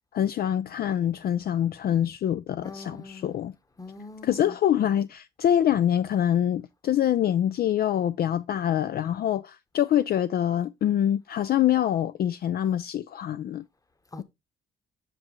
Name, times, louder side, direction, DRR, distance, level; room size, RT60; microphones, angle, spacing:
voice 1, 0.1-3.5 4.2-13.6, left 10 dB, 50° left, 0.4 m, -25 dB
voice 2, 2.6-3.3 3.8-4.6 14.1-14.2, left 3 dB, 15° left, 1.0 m, -42 dB
7.7 x 6.0 x 3.0 m
cardioid pair, 90°, 20 cm